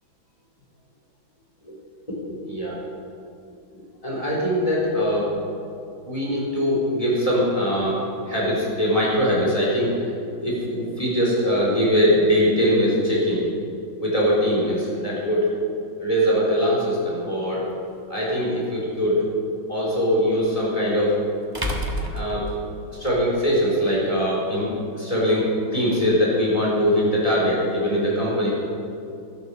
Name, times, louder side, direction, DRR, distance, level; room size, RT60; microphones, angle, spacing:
voice 1, 4.0-5.3 6.0-8.0 8.3-9.9 10.4-13.4 14.0-15.5 16.0-17.7 18.1-19.3 19.7-21.2 22.1-22.4 23.0-24.7 24.9-28.5, equal, 15° left, -6 dB, 3.9 m, -22 dB
sound 1, 17.7-17.8 20.4-20.5 21.5-23.1, equal, 15° right, 1.0 m, -29 dB
12.0 x 11.5 x 7.0 m, 2.4 s
omnidirectional pair, 2.3 m